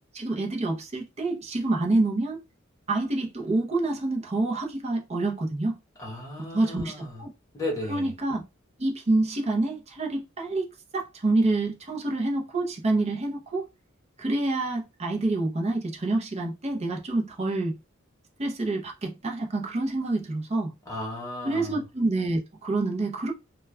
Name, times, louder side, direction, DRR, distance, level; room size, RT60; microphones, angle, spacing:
voice 1, 0.1-2.4 2.9-5.8 6.5-7.3 7.9-8.4 8.8-10.7 10.9-13.7 14.2-17.7 18.4-20.7 21.4-23.3, right 2 dB, 30° right, 0.6 m, -27 dB
voice 2, 6.0-7.2 7.5-8.1 20.9-21.8, left 1 dB, 15° left, 1.2 m, -34 dB
2.2 x 2.2 x 3.3 m
head